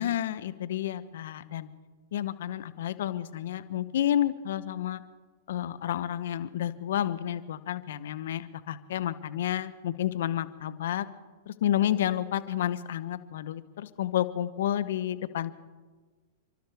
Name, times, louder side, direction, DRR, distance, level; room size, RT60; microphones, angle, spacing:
voice 1, 0.0-1.7 2.1-5.0 5.5-11.1 11.5-15.5, left 11 dB, 70° left, 13 dB, 0.9 m, -30 dB
29.5 x 12.5 x 3.5 m, 1.4 s
hypercardioid pair, 110°, 0 cm